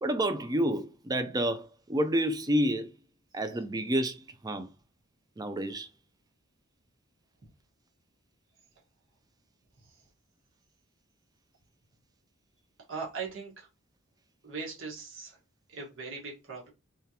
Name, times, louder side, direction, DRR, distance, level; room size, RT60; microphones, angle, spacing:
voice 1, 0.0-2.9 3.3-4.2 4.4-4.7 5.4-5.9, right 1 dB, 20° right, 0.4 m, -29 dB
voice 2, 12.9-13.7 14.4-15.4 15.7-16.7, right 4 dB, 65° right, 1.5 m, -40 dB
3.6 x 3.3 x 2.8 m
head